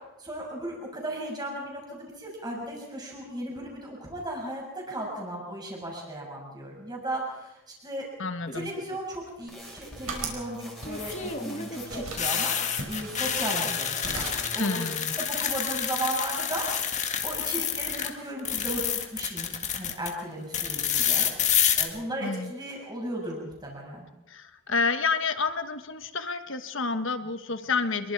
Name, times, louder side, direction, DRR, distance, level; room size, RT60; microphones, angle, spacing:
voice 1, 0.2-8.0 8.5-14.8 15.2-16.7 17.2-21.3 21.8-24.1, right 1 dB, 20° right, -1 dB, 6.4 m, -36 dB
voice 2, 8.2-8.7 14.6-15.1 22.2-22.5 24.3-28.1, left 4 dB, 55° left, 9 dB, 1.3 m, -29 dB
sound 1, 8.5-9.0 10.8-18.1 18.4-20.1 20.5-21.8, left 8 dB, 30° left, 1.9 m, -28 dB
sound 2, 9.4-10.5 10.8-11.5 11.9-12.3 12.8-13.8 14.0-14.5, right 3 dB, 70° right, 5.4 m, -38 dB
sound 3, 9.5-14.6 14.9-15.4, equal, ahead, 5.2 m, -46 dB
26.0 x 22.5 x 4.7 m, 0.95 s
head